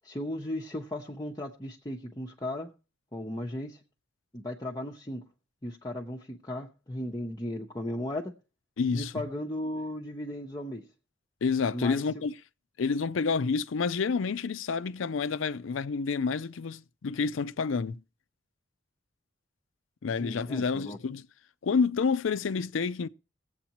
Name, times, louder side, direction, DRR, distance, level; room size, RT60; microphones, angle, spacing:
voice 1, 0.0-2.7 3.1-3.8 4.3-5.3 5.6-8.3 8.9-10.9 11.7-12.0 20.2-21.0, left 1 dB, 20° left, 0.7 m, -36 dB
voice 2, 8.8-9.1 11.4-12.3 12.8-18.0 20.0-21.3 21.6-23.1, left 5 dB, 80° left, 0.5 m, -29 dB
20.5 x 8.0 x 2.9 m
head